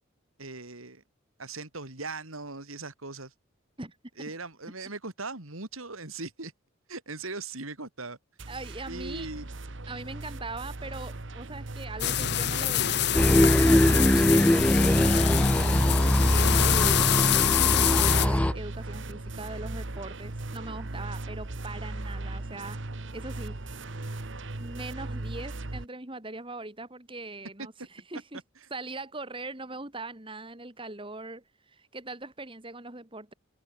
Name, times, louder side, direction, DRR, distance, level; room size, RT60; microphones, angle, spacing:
voice 1, 0.4-1.0 1.4-3.3 4.2-6.5 6.9-8.2 8.9-9.5, right 3 dB, 85° right, 3.9 m, -39 dB
voice 2, 3.8-4.2 4.6-4.7 8.5-9.3 9.9-15.8 16.3-17.3 17.7-22.8 23.1-23.6 24.6-28.4 28.7-33.3, right 2 dB, 25° right, 2.1 m, -41 dB
sound 1, 8.4-25.8, right 2 dB, 60° right, 1.3 m, -38 dB
sound 2, 12.0-18.3, left 10 dB, 50° left, 0.9 m, -26 dB
sound 3, 13.1-18.5, left 1 dB, 5° left, 0.3 m, -22 dB
head